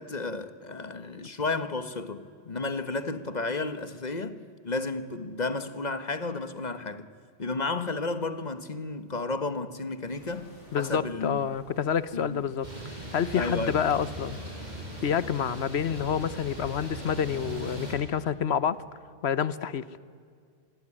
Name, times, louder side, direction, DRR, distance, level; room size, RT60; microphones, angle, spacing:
voice 1, 0.0-4.4 4.6-7.1 7.4-10.5 10.8-11.4 12.1-12.4 13.3-13.8, left 3 dB, 40° left, 1.4 m, -32 dB
sound 1, 10.1-17.9, equal, 80° left, 4.9 m, -53 dB
voice 2, 10.7-12.7 12.9-14.4 15.0-18.8 19.2-19.9, left 8 dB, 65° left, 1.2 m, -28 dB
sound 2, 12.6-17.9, right 1 dB, 35° right, 5.8 m, -39 dB
26.5 x 20.5 x 10.0 m
omnidirectional pair, 1.2 m